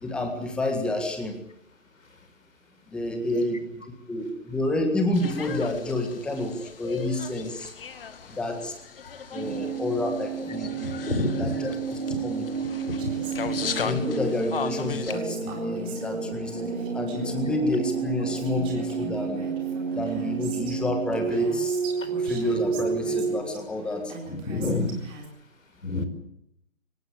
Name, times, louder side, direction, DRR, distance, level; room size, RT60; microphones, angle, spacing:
voice 1, 0.0-1.4 2.9-3.8 4.1-7.7 8.3-8.7 9.3-12.4 13.8-16.6 16.9-19.4 19.9-21.8 22.2-24.1, left 1 dB, ahead, 5 dB, 1.7 m, -29 dB
sound 1, 5.1-15.2, left 6 dB, 45° left, 2.3 m, -37 dB
sound 2, 9.4-23.4, right 5 dB, 60° right, 6.3 m, -31 dB
voice 2, 10.8-11.5 12.1-12.2 12.9-13.1 24.3-25.0 25.8-26.0, left 2 dB, 75° left, 10 dB, 5.2 m, -29 dB
Female speech woman speaking, 13.0-14.2 15.1-17.4 18.0-18.1 18.3-20.8 21.1-23.6 24.1-25.3, right 2 dB, 15° right, 3.9 m, -41 dB
24.5 x 19.0 x 8.4 m, 0.79 s
figure-of-eight pair, 155°, 40 cm